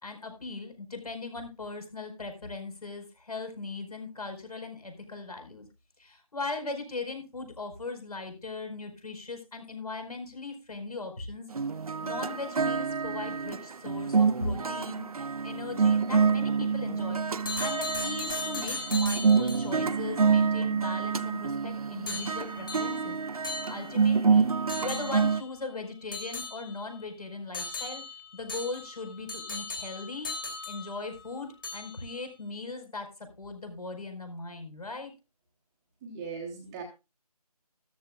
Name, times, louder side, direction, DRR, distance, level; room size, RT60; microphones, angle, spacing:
voice 1, 0.0-5.7 6.0-11.5 12.0-15.0 15.4-17.2 17.5-23.2 23.7-24.5 24.8-28.0 28.3-30.3 30.7-35.1, left 3 dB, 70° left, 6 dB, 4.8 m, -39 dB
sound 1, 11.5-25.4, right 5 dB, 65° right, 0.7 m, -27 dB
sound 2, 17.4-19.8 22.1-24.2 24.7-25.5 26.1-27.0 27.5-31.3 31.6-32.2, left 3 dB, 35° left, 2.9 m, -38 dB
voice 2, 36.0-36.8, right 5 dB, 10° right, 1 dB, 1.0 m, -39 dB
14.0 x 13.5 x 2.4 m, 0.27 s
figure-of-eight pair, 165°, 20 cm